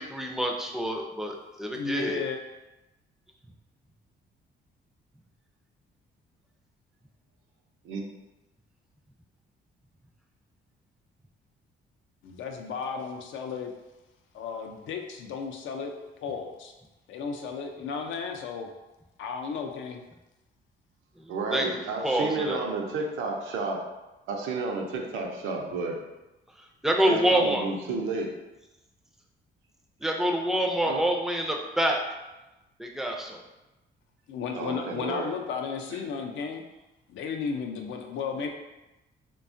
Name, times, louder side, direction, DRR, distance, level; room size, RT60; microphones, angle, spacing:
voice 1, 0.0-2.2 21.2-22.6 26.6-27.6 30.0-32.0 32.8-33.4, right 1 dB, ahead, 1 dB, 0.3 m, -27 dB
voice 2, 1.7-2.4 12.2-13.7 14.3-15.9 16.2-16.7 17.1-18.7 19.2-20.0 34.3-36.6 37.1-38.5, left 5 dB, 75° left, 3 dB, 0.4 m, -34 dB
voice 3, 21.3-23.8 24.3-26.0 27.1-28.3 30.8-31.0 34.5-35.3, right 3 dB, 80° right, 1 dB, 0.5 m, -31 dB
2.7 x 2.2 x 2.5 m, 1.0 s
cardioid pair, 90°, 20 cm